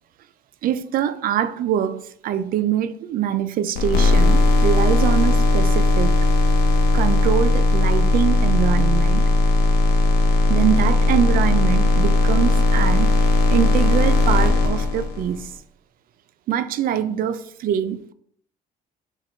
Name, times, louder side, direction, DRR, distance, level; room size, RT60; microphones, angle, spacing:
voice 1, 0.6-6.2 6.9-9.2 10.5-15.5 16.5-18.1, right 9 dB, 60° right, 0.4 m, -24 dB
sound 1, 3.8-15.4, left 2 dB, 85° left, 0.8 m, -17 dB
4.9 x 2.3 x 4.3 m
cardioid pair, 110°, 17 cm